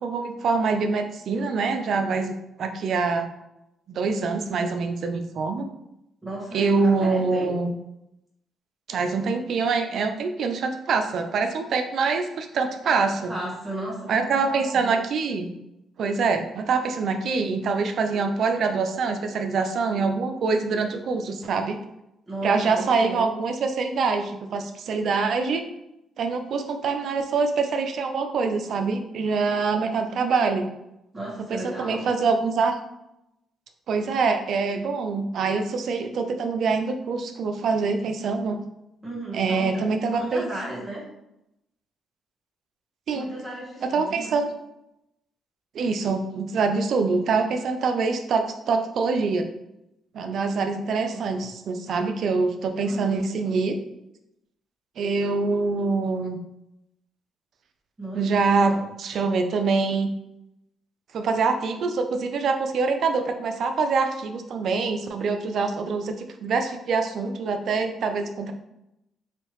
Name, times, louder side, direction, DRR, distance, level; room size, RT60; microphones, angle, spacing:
voice 1, 0.0-3.3 3.9-5.7 6.5-7.7 8.9-13.3 14.1-15.5 16.0-21.8 22.4-25.6 26.2-30.7 31.5-32.8 33.9-38.6 39.3-40.5 43.1-43.3 43.8-44.5 45.7-49.5 50.1-53.7 55.0-56.4 58.1-60.1 61.1-68.5, right 4 dB, 65° right, 6 dB, 0.4 m, -25 dB
voice 2, 6.2-7.6 13.3-14.9 22.3-23.3 31.1-32.1 39.0-39.8 40.1-41.0 43.1-44.4 50.9-51.5 52.8-53.2 58.0-58.9, right 1 dB, 20° right, -5 dB, 1.3 m, -35 dB
3.3 x 2.7 x 3.0 m, 0.87 s
cardioid pair, 90°, 0 cm